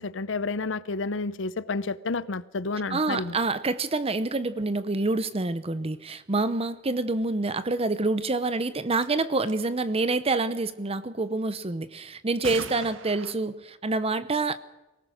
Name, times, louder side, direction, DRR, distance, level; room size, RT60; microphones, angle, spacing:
voice 1, 0.0-3.4, left 3 dB, 70° left, 0.8 m, -30 dB
voice 2, 2.9-14.6, right 3 dB, 30° right, 0.8 m, -27 dB
sound 1, 8.6-8.7 9.0-9.1 9.4-9.8 12.4-13.3, right 4 dB, 90° right, 1.6 m, -39 dB
23.5 x 18.5 x 6.4 m
head